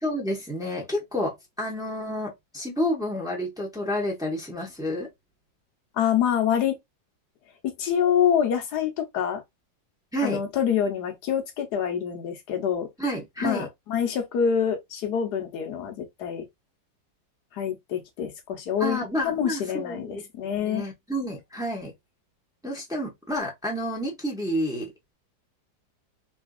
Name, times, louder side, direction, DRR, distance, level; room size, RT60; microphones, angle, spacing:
voice 1, 0.0-5.1 10.1-10.4 13.0-13.7 18.8-21.9 22.6-24.9, equal, 5° right, 0.7 m, -30 dB
voice 2, 5.9-6.8 7.6-9.4 10.2-12.9 13.4-16.5 17.5-20.8, left 8 dB, 65° left, 1.3 m, -26 dB
3.5 x 2.8 x 2.3 m
omnidirectional pair, 2.0 m